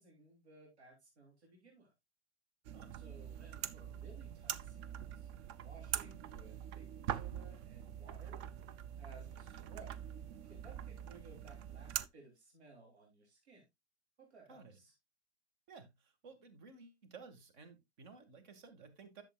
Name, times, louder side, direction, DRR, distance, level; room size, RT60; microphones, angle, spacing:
voice 1, 0.0-1.9 2.9-5.3 5.6-8.5 9.0-10.1 10.4-13.6 14.2-14.9, right 3 dB, 75° right, 3.5 m, -59 dB
sound 1, 2.6-12.1, right 10 dB, 25° right, 0.4 m, -44 dB
voice 2, 15.7-19.2, right 5 dB, 45° right, 2.1 m, -55 dB
11.0 x 7.1 x 2.4 m
figure-of-eight pair, 100°, 33 cm